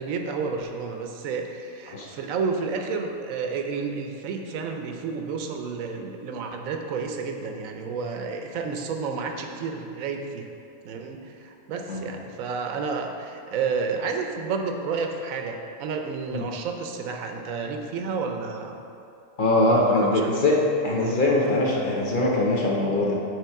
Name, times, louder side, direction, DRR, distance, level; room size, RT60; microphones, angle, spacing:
voice 1, 0.0-10.5 10.8-18.8 19.7-20.6 21.0-21.2, right 5 dB, 85° right, 4 dB, 1.1 m, -31 dB
voice 2, 19.4-23.2, left 2 dB, 45° left, -3 dB, 0.8 m, -22 dB
6.8 x 4.3 x 4.6 m, 2.6 s
omnidirectional pair, 1.4 m